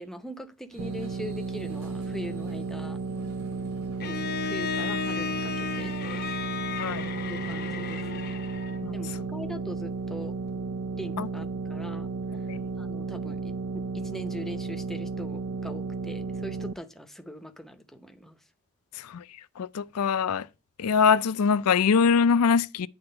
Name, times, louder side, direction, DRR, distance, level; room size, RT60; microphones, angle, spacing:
voice 1, 0.0-3.0 4.0-5.9 7.2-8.3 8.9-10.3 11.0-12.1 12.4-12.5 12.7-18.4, equal, ahead, 0.7 m, -41 dB
sound 1, 0.7-6.8, right 2 dB, 85° right, 2.4 m, -50 dB
sound 2, 0.8-16.7, right 4 dB, 60° right, 0.5 m, -33 dB
Bowed string instrument, 4.0-8.9, left 7 dB, 45° left, 0.7 m, -34 dB
voice 2, 18.9-19.2 19.6-20.5 20.8-22.9, left 6 dB, 85° left, 0.5 m, -23 dB
9.6 x 3.5 x 6.7 m
head